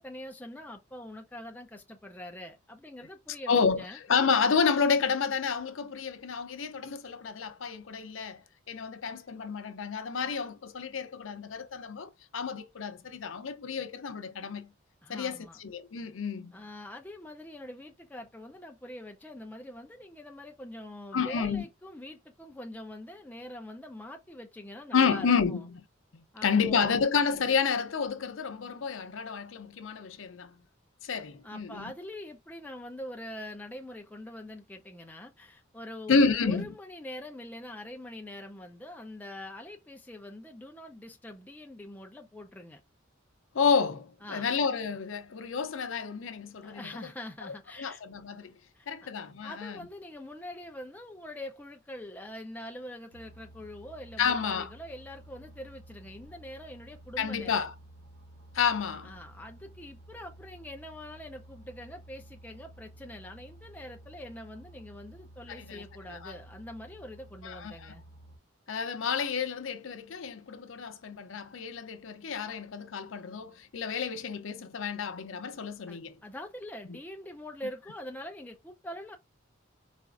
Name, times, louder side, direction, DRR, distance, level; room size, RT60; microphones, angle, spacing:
voice 1, 0.0-4.0 15.0-15.6 16.5-25.6 26.3-27.0 31.4-42.8 44.2-44.5 46.6-48.0 48.7-49.1 49.4-57.7 59.0-68.0 75.9-79.2, left 1 dB, 10° left, 0.4 m, -44 dB
voice 2, 3.5-14.7 15.1-16.5 21.1-21.6 24.9-25.8 26.1-30.6 31.0-31.9 36.1-36.7 43.5-46.8 47.4-48.5 48.9-49.8 54.2-54.7 57.2-57.7 58.5-59.1 65.6-66.3 67.4-67.9 68.7-76.2, left 5 dB, 70° left, 0.6 m, -30 dB
sound 1, 53.1-68.4, right 1 dB, 75° right, 1.2 m, -52 dB
4.1 x 2.4 x 2.4 m
head